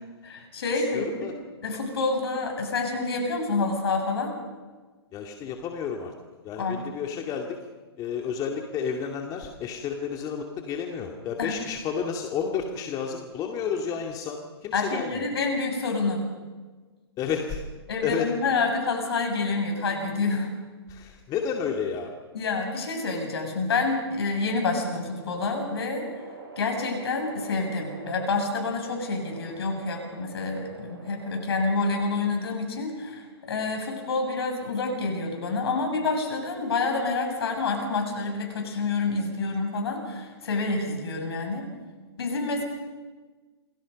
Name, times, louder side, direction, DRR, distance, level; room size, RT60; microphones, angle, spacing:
voice 1, 0.2-1.0 1.6-4.3 6.6-6.8 11.4-11.6 14.7-16.3 17.9-20.5 22.3-26.1 26.6-41.7 42.2-42.6, left 3 dB, 70° left, 3 dB, 7.7 m, -28 dB
voice 2, 0.7-1.3 5.1-6.1 6.4-7.6 8.0-15.2 17.2-17.6 18.0-18.3 20.9-22.1, left 7 dB, 25° left, 2 dB, 2.4 m, -31 dB
sound 1, 24.8-32.6, right 3 dB, 65° right, 7.7 m, -45 dB
28.5 x 23.0 x 5.4 m, 1.3 s
hypercardioid pair, 125°, 14 cm